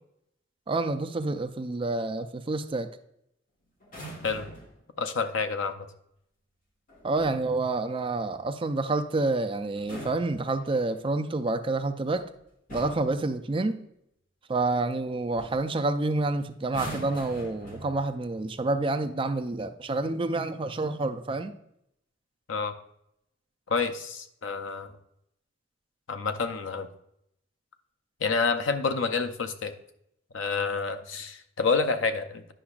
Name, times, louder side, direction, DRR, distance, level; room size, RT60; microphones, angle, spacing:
voice 1, 0.7-2.9 7.0-12.3 12.7-13.8 14.5-21.5, right 2 dB, 30° right, 8 dB, 0.4 m, -28 dB
sound 1, 3.8-4.8 6.9-7.5 9.7-11.0 12.1-12.3 12.7-13.2 14.9-15.1 15.4-15.7 16.6-18.3 19.2-19.5, equal, 45° left, 1.5 m, -43 dB
voice 2, 5.0-5.9 22.5-22.7 23.7-24.9 26.1-26.9 28.2-29.7 30.3-32.5, left 4 dB, 80° left, 9 dB, 0.6 m, -28 dB
9.9 x 5.9 x 2.4 m, 0.76 s
head